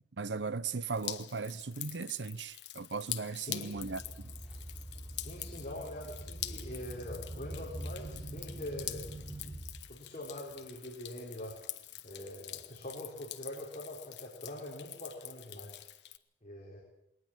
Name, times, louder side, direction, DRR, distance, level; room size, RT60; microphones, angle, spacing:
voice 1, 0.2-4.3, right 4 dB, 80° right, 0.8 m, -37 dB
Drip, 0.9-16.2, left 14 dB, 70° left, 1.2 m, -45 dB
voice 2, 3.3-3.7 5.1-9.1 9.9-11.6 12.0-15.8 16.4-16.8, left 1 dB, 40° left, 4.5 m, -44 dB
sound 1, 3.7-9.9 10.5-10.7 11.6-11.7 12.5-12.6, right 1 dB, 5° right, 6.4 m, -44 dB
20.5 x 19.0 x 7.5 m
head